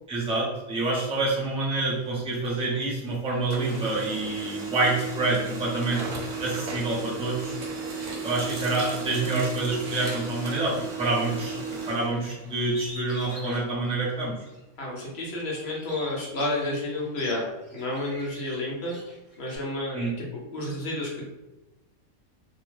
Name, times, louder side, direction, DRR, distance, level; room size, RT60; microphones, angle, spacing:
voice 1, 0.1-6.0 6.4-7.5 8.2-14.3 19.9-20.1, right 2 dB, 10° right, -6 dB, 0.4 m, -27 dB
Printer, 1.8-3.1 3.4-12.9, right 4 dB, 75° right, 1.0 m, -35 dB
Bird, 12.6-14.6 15.1-19.6, left 1 dB, 25° left, 0.9 m, -46 dB
voice 2, 13.3-13.6 14.8-17.4 17.7-18.9 19.4-21.2, left 1 dB, 55° left, -3 dB, 0.9 m, -31 dB
2.7 x 2.1 x 3.2 m, 1.0 s
omnidirectional pair, 1.5 m